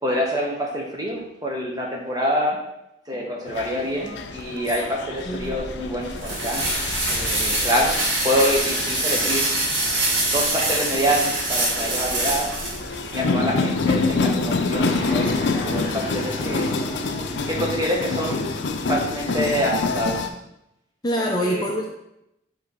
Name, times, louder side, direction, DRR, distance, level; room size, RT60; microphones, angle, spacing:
voice 1, 0.0-2.6 3.1-6.7 7.1-7.9 8.2-9.5 10.3-12.5 13.1-16.7 17.5-18.4 18.9-20.3 21.2-21.6, equal, 20° right, -1 dB, 1.1 m, -26 dB
sound 1, 3.5-20.3, left 3 dB, 70° left, 0.5 m, -27 dB
sound 2, 5.4-13.2, right 2 dB, 85° right, 1.6 m, -25 dB
Fixed-wing aircraft airplane, 14.7-20.1, left 1 dB, 50° left, 1.6 m, -34 dB
voice 2, 21.0-21.9, equal, 20° left, -1 dB, 0.5 m, -25 dB
8.3 x 3.1 x 4.0 m, 0.84 s
head